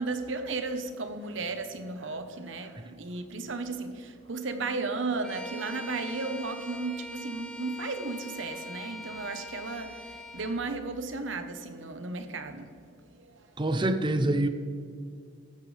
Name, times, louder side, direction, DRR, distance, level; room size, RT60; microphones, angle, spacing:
voice 1, 0.0-12.7 13.2-13.4, right 3 dB, 75° right, 8 dB, 1.0 m, -34 dB
Bowed string instrument, 5.2-10.6, left 1 dB, 5° left, 1.0 m, -43 dB
voice 2, 13.6-14.5, right 1 dB, 25° right, 9 dB, 0.6 m, -25 dB
15.0 x 11.5 x 3.4 m, 2.3 s
head